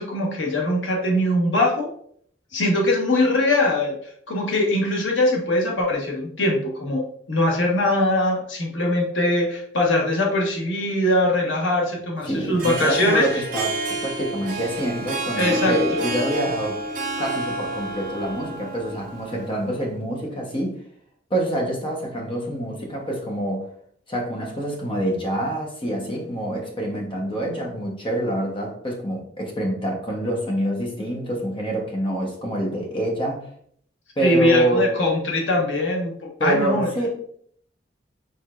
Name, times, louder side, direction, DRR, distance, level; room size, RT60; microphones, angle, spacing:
voice 1, 0.0-1.9 2.5-3.9 4.3-7.0 7.3-13.3 15.4-15.7 34.2-36.1 36.4-37.1, left 1 dB, 85° left, -1 dB, 1.2 m, -21 dB
voice 2, 12.3-16.8 17.2-20.8 21.3-23.7 24.1-33.5 34.2-34.9 36.4-37.1, equal, 30° left, 0 dB, 1.0 m, -26 dB
Harp, 12.4-19.8, right 2 dB, 50° right, 0.8 m, -29 dB
4.6 x 4.2 x 2.5 m, 0.63 s
head